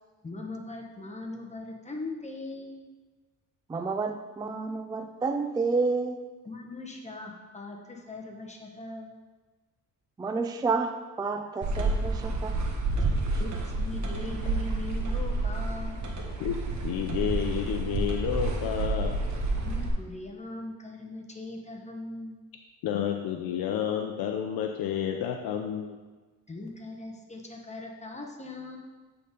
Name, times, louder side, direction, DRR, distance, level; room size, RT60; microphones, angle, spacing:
voice 1, 0.2-2.8 6.4-9.1 13.4-16.0 19.6-22.4 26.5-28.8, left 2 dB, 20° left, 0 dB, 1.1 m, -40 dB
voice 2, 3.7-6.2 10.2-12.6, right 4 dB, 10° right, 7 dB, 0.3 m, -30 dB
sound 1, 11.6-19.9, right 2 dB, 55° right, 1.2 m, -29 dB
voice 3, 16.8-19.1 22.8-26.0, left 9 dB, 85° left, 3 dB, 0.6 m, -30 dB
8.6 x 3.9 x 5.2 m, 1.3 s
cardioid pair, 95°, 35 cm